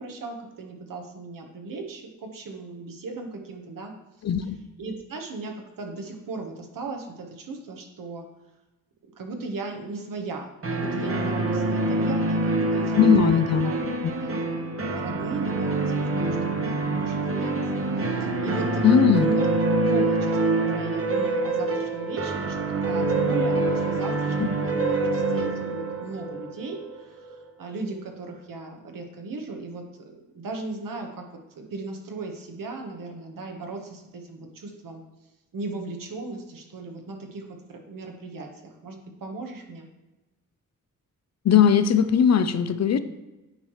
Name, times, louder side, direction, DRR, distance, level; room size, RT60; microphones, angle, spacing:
voice 1, 0.0-3.9 4.4-4.5 4.8-8.2 9.2-18.8 19.1-19.5 19.8-22.6 22.8-31.3 31.5-35.0 35.5-39.9, right 3 dB, 70° right, 3 dB, 1.3 m, -37 dB
voice 2, 4.2-4.6 13.0-13.7 18.8-19.3 24.4-24.5 41.4-43.0, left 7 dB, 50° left, 12 dB, 0.5 m, -19 dB
sound 1, 10.6-27.4, right 2 dB, 40° right, 1.1 m, -25 dB
9.5 x 4.7 x 3.1 m, 1.1 s
cardioid pair, 70°, 34 cm